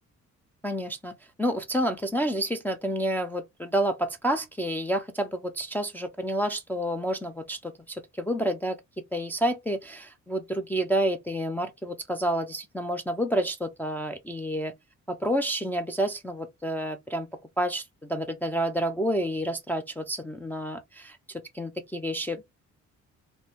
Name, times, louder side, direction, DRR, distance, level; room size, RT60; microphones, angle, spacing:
voice 1, 0.6-1.1 1.4-8.8 9.1-14.7 15.1-17.3 17.6-17.8 18.1-22.4, right 1 dB, 5° left, 0.4 m, -29 dB
2.7 x 2.0 x 3.4 m
cardioid pair, 90°, 30 cm